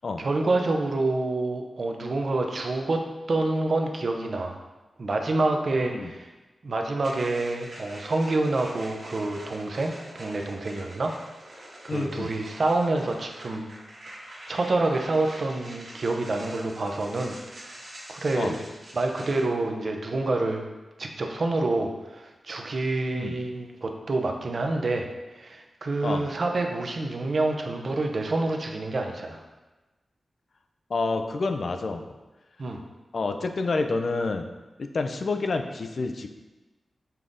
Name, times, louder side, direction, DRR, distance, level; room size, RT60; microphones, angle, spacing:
voice 1, 0.2-4.6 5.0-6.3 6.6-11.1 11.5-13.7 14.5-17.8 18.1-18.6 18.9-20.6 21.0-29.4 32.6-32.8, right 2 dB, 55° right, 3 dB, 0.5 m, -27 dB
voice 2, 5.7-6.1 11.9-12.3 18.4-18.6 23.1-23.4 26.0-26.2 30.9-32.0 33.1-34.5 34.8-36.3, left 3 dB, 60° left, 6 dB, 0.3 m, -28 dB
sound 1, 7.0-19.4, right 1 dB, 70° right, 1.4 m, -45 dB
5.6 x 2.5 x 3.5 m, 1.1 s
wide cardioid pair, 100°, 0 cm